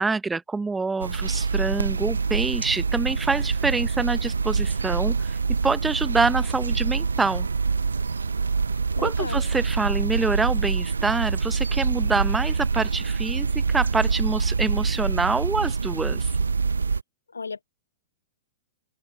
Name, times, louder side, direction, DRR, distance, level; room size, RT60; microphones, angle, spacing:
voice 1, 0.0-5.4 5.6-7.5 9.0-16.3, right 4 dB, 10° right, 0.6 m, -26 dB
sound 1, 1.0-17.0, right 4 dB, 85° right, 0.5 m, -25 dB
voice 2, 9.0-9.4 17.3-17.6, left 4 dB, 85° left, 0.6 m, -33 dB
open air
hypercardioid pair, 110°, 0 cm